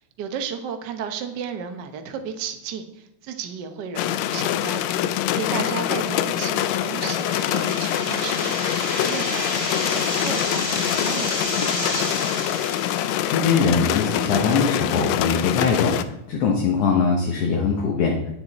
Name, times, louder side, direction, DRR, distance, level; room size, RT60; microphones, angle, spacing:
voice 1, 0.2-4.8 5.4-9.5 9.9-12.4, right 7 dB, 75° right, 7 dB, 0.9 m, -34 dB
sound 1, 4.0-16.0, left 11 dB, 80° left, 1.7 m, -25 dB
sound 2, 6.6-13.6, left 1 dB, 10° left, 1.4 m, -30 dB
voice 2, 13.2-16.0 16.3-18.2, left 5 dB, 60° left, 0 dB, 1.9 m, -21 dB
9.7 x 8.1 x 4.2 m, 0.81 s
omnidirectional pair, 3.3 m